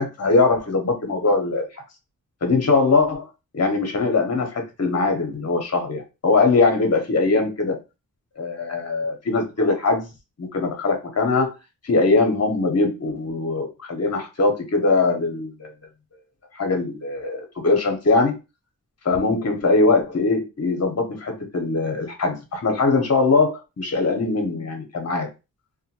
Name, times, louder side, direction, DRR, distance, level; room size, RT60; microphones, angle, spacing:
voice 1, 0.0-1.8 2.4-3.3 3.5-7.8 8.4-10.1 10.4-11.5 11.8-15.7 16.5-18.3 19.0-25.3, left 3 dB, 45° left, 3 dB, 0.9 m, -21 dB
2.4 x 2.3 x 2.8 m, 0.27 s
wide cardioid pair, 60°, 35 cm